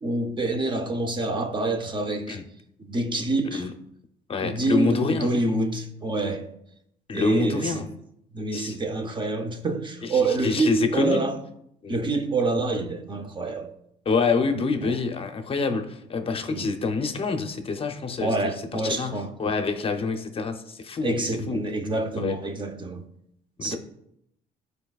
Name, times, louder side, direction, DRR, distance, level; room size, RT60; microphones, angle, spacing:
voice 1, 0.0-2.4 2.8-3.7 4.4-6.4 7.1-7.9 8.3-11.3 11.9-13.7 14.8-15.0 16.5-16.7 18.2-19.3 21.0-23.1 23.6-23.8, right 2 dB, 30° right, 0.8 m, -27 dB
voice 2, 4.3-5.3 7.1-7.8 8.5-8.8 10.0-11.3 11.8-12.0 14.1-21.6 22.2-22.4 23.6-23.8, left 4 dB, 35° left, 0.7 m, -27 dB
10.5 x 4.7 x 2.4 m
cardioid pair, 110°, 17 cm